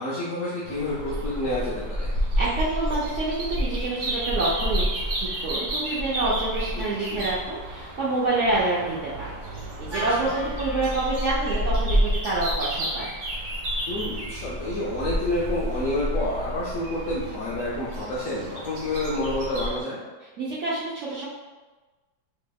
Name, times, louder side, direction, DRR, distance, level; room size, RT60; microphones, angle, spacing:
voice 1, 0.0-2.2 6.7-7.3 10.1-10.3 13.9-20.0, left 1 dB, 70° left, -6 dB, 0.7 m, -29 dB
sound 1, 0.7-19.8, equal, 65° right, 1.2 m, -30 dB
voice 2, 2.4-4.9 5.2-13.1 20.4-21.2, right 2 dB, 80° right, -7 dB, 0.6 m, -27 dB
Wind instrument woodwind instrument, 9.9-14.2, right 1 dB, 40° right, 0.3 m, -40 dB
4.0 x 2.8 x 2.2 m, 1.3 s
omnidirectional pair, 1.9 m